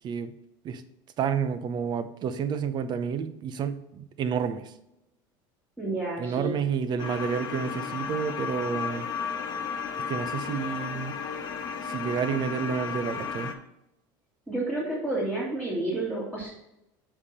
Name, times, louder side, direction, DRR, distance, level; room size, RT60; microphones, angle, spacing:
voice 1, 1.2-4.7 6.2-9.1 10.1-11.2 11.8-13.5, right 7 dB, 45° right, 11 dB, 0.8 m, -30 dB
voice 2, 5.8-6.5 14.5-16.5, right 2 dB, 10° right, -5 dB, 2.2 m, -30 dB
sound 1, 7.0-13.5, left 6 dB, 45° left, 1.2 m, -34 dB
6.9 x 5.5 x 4.1 m, 0.86 s
supercardioid pair, 110°, 11 cm